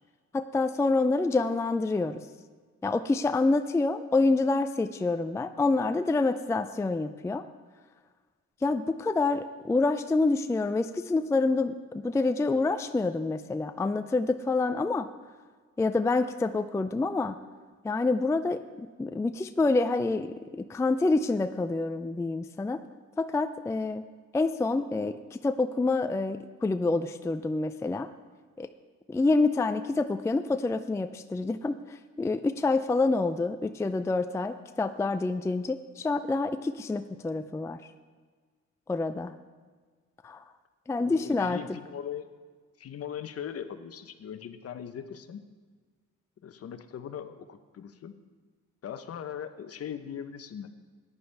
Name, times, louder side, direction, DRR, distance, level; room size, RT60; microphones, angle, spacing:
voice 1, 0.3-2.2 2.8-7.4 8.6-15.1 15.8-17.3 17.8-22.8 23.2-24.0 24.3-28.1 28.6-28.7 29.1-37.8 38.9-39.3 40.2-40.4 40.9-41.6, left 3 dB, 10° left, 9 dB, 0.4 m, -27 dB
voice 2, 41.0-42.3 42.8-45.4 46.4-48.1 48.8-50.7, left 8 dB, 50° left, 10 dB, 0.8 m, -40 dB
14.0 x 9.8 x 3.4 m, 1.5 s
cardioid pair, 90°, 30 cm